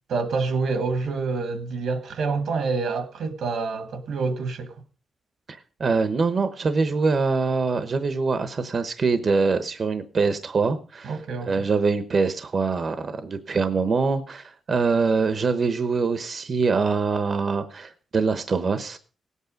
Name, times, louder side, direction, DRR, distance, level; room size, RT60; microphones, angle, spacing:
voice 1, 0.1-4.7 11.0-11.7, right 4 dB, 85° right, 1.8 m, -27 dB
voice 2, 5.5-11.2 11.5-19.0, right 4 dB, 45° right, 0.9 m, -24 dB
18.0 x 8.3 x 5.1 m
cardioid pair, 120°, 0 cm